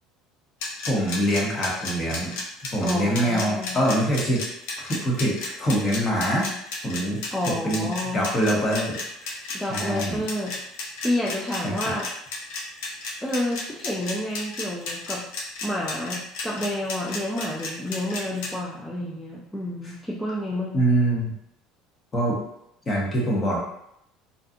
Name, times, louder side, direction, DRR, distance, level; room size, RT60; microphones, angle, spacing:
sound 1, 0.6-18.5, left 3 dB, 85° left, 0.6 m, -32 dB
voice 1, 0.9-2.3 2.7-4.4 4.8-6.5 6.8-7.2 7.5-9.0 9.2-9.3 9.7-10.2 11.6-11.9 20.7-21.3 22.1-22.4 22.9-23.6, right 1 dB, 25° left, -4 dB, 0.9 m, -24 dB
voice 2, 2.8-3.8 7.3-8.3 9.5-10.7 11.0-12.1 13.2-15.3 15.6-20.9, left 1 dB, 5° left, -5 dB, 0.3 m, -29 dB
2.6 x 2.2 x 2.5 m, 0.77 s
cardioid pair, 130°, 0 cm